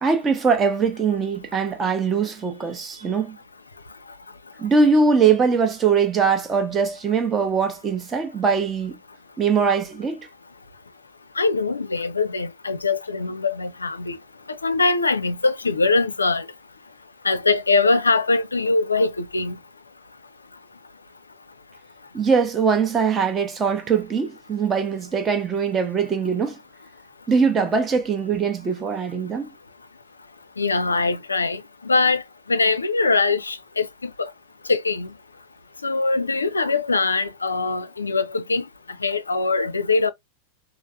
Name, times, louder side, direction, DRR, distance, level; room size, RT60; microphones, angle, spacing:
voice 1, 0.0-3.4 4.6-9.0 9.4-10.3 22.1-26.6 27.3-29.5, right 5 dB, 20° right, 0.7 m, -21 dB
voice 2, 11.4-14.2 14.6-16.5 17.2-19.5 30.6-32.2 32.5-34.3 34.7-35.1 35.8-38.6 39.0-40.1, left 3 dB, 80° left, 0.4 m, -22 dB
3.4 x 2.4 x 2.4 m
figure-of-eight pair, 90°, 0 cm